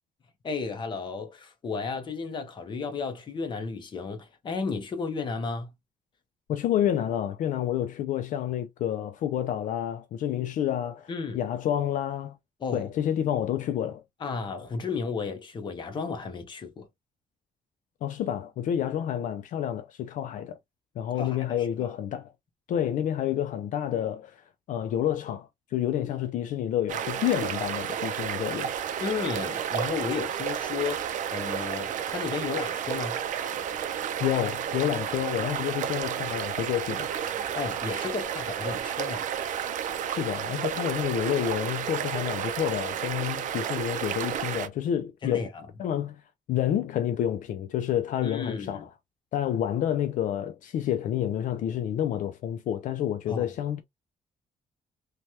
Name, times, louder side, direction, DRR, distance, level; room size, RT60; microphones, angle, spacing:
voice 1, 0.4-5.7 11.1-11.4 12.6-12.9 14.2-16.9 21.2-22.0 29.0-33.2 37.5-39.3 45.2-45.7 48.2-48.9 53.3-53.5, left 5 dB, 35° left, 0.7 m, -33 dB
voice 2, 6.5-12.4 12.7-14.0 18.0-20.6 21.0-22.3 22.7-28.7 34.2-37.1 40.1-45.5 45.8-46.2 46.5-48.9 49.3-53.8, left 10 dB, 70° left, 0.4 m, -29 dB
sound 1, 26.9-44.7, right 9 dB, 70° right, 0.4 m, -31 dB
3.2 x 2.2 x 2.7 m
cardioid pair, 170°, 14 cm